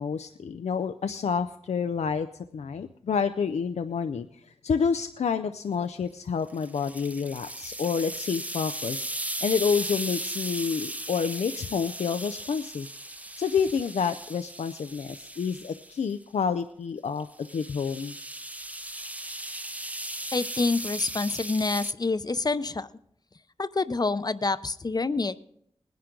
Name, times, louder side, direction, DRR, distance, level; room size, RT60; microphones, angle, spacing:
voice 1, 0.0-2.3 2.5-9.1 9.4-12.9 13.4-17.3 17.5-18.2, left 6 dB, 90° left, 9 dB, 0.4 m, -29 dB
sound 1, 6.5-16.0 17.2-21.9, right 1 dB, 15° right, 0.6 m, -37 dB
voice 2, 20.3-22.9 23.6-25.4, left 3 dB, 35° left, 14 dB, 0.6 m, -27 dB
20.0 x 10.5 x 3.8 m, 0.74 s
cardioid pair, 55°, 11 cm